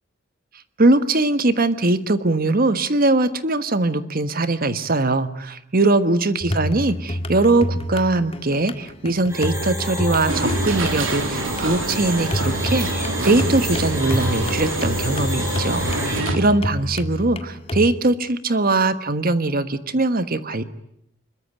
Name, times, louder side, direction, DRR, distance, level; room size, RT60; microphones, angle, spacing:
voice 1, 0.8-20.6, right 2 dB, 45° right, 11 dB, 1.4 m, -21 dB
sound 1, 6.4-17.9, left 1 dB, 30° left, 1.9 m, -28 dB
sound 2, 9.3-16.2, equal, 15° right, 6.9 m, -30 dB
sound 3, 10.3-16.4, right 2 dB, 80° right, 3.4 m, -27 dB
25.0 x 22.0 x 9.0 m, 0.75 s
head